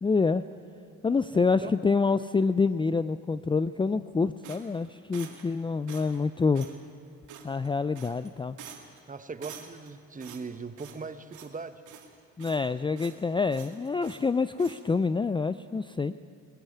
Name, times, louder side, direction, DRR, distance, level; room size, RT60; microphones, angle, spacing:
voice 1, 0.0-0.4 1.0-6.7 7.4-8.6 12.4-16.1, left 4 dB, 15° left, 13 dB, 0.4 m, -27 dB
voice 2, 1.3-1.7 9.1-11.8, right 4 dB, 25° right, 11 dB, 1.2 m, -40 dB
sound 1, 4.4-5.5 5.9-6.2 6.5-6.8 7.3-7.7 7.9-8.3 8.6-9.0 9.4-9.9 10.2-11.1 11.3-11.6 11.9-12.7 13.0-13.2 13.5-14.3 14.6-14.8, right 8 dB, 80° right, 2.4 m, -47 dB
21.0 x 14.0 x 9.4 m, 2.5 s
cardioid pair, 90°, 30 cm